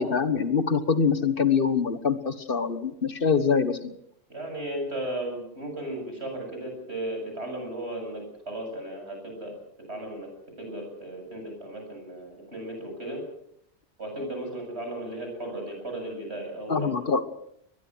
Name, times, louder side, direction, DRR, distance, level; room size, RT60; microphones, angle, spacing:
voice 1, 0.0-3.9 16.7-17.2, left 5 dB, 55° left, 11 dB, 1.5 m, -24 dB
voice 2, 4.3-9.6 9.9-10.3 10.6-13.2 14.0-17.1, right 1 dB, 75° right, 3 dB, 8.0 m, -35 dB
22.0 x 21.5 x 6.3 m, 0.74 s
omnidirectional pair, 1.1 m